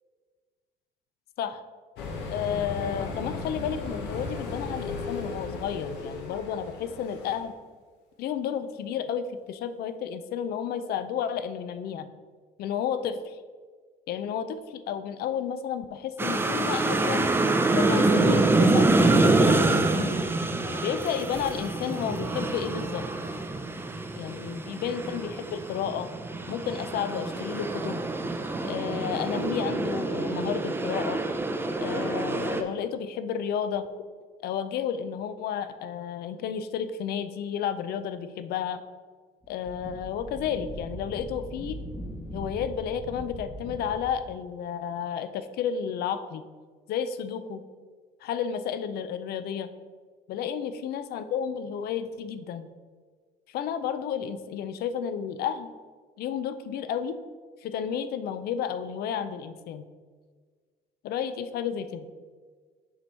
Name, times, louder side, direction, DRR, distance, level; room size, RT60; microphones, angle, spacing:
sound 1, 2.0-7.5, left 3 dB, 90° left, 1.0 m, -36 dB
voice 1, 2.3-7.5 8.2-12.1 12.6-13.4 14.1-17.3 17.7-20.2 20.6-23.0 24.2-26.1 26.5-28.0 28.6-31.2 31.8-33.9 34.4-38.8 39.5-41.8 42.3-46.4 46.9-47.6 48.2-49.7 50.3-52.7 53.5-55.7 56.2-57.2 57.6-59.9 61.0-62.1, left 8 dB, 70° left, 11 dB, 0.5 m, -32 dB
sound 2, 16.2-32.6, right 2 dB, 15° right, 0.5 m, -26 dB
Wind, 39.4-44.3, equal, 10° left, 0.9 m, -40 dB
7.4 x 3.0 x 5.3 m, 1.5 s
cardioid pair, 110°, 17 cm